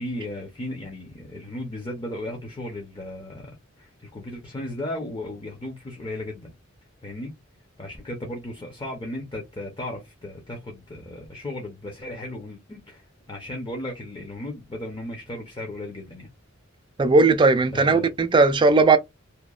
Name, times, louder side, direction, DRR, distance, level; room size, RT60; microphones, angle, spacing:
voice 1, 0.0-6.5 7.0-7.3 7.8-16.3 17.7-18.1, left 1 dB, 25° left, 0.6 m, -35 dB
voice 2, 17.0-19.0, right 3 dB, 25° right, 0.3 m, -17 dB
2.9 x 2.1 x 2.3 m
head